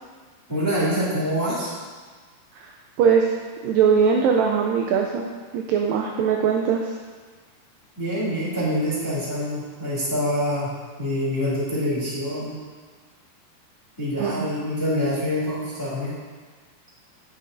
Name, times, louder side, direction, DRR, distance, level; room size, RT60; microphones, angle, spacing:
voice 1, 0.5-1.7 8.0-10.7 11.0-12.6 14.0-16.1, equal, 5° left, -9 dB, 1.8 m, -25 dB
voice 2, 3.6-5.3 5.5-6.9 14.2-14.5, right 6 dB, 85° right, 1 dB, 2.0 m, -20 dB
9.6 x 8.3 x 2.6 m, 1.5 s
omnidirectional pair, 4.5 m